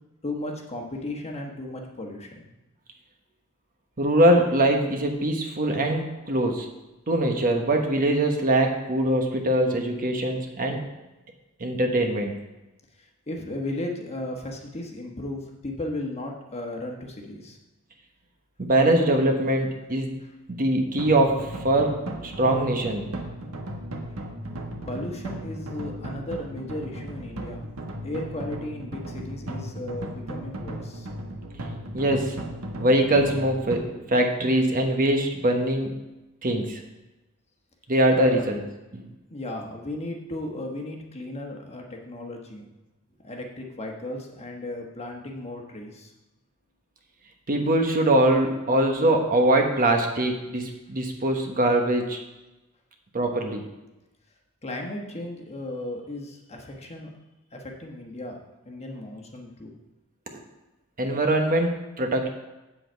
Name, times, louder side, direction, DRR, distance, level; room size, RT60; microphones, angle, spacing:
voice 1, 0.2-2.5 13.3-17.6 24.9-27.7 28.0-31.1 38.1-38.5 39.3-42.7 43.2-46.1 54.6-57.1 57.5-59.7, left 1 dB, 30° left, 1 dB, 1.2 m, -35 dB
voice 2, 4.0-6.7 7.1-10.8 11.6-12.4 18.6-20.2 20.5-23.0 31.9-32.3 32.8-36.0 36.4-36.8 37.9-38.6 38.9-39.0 47.5-52.2 53.1-53.6 60.3-60.4 61.0-62.3, right 1 dB, 40° right, 3 dB, 1.1 m, -22 dB
sound 1, 21.0-33.8, right 1 dB, 75° right, 1.3 m, -36 dB
8.1 x 7.8 x 4.5 m, 1.0 s
head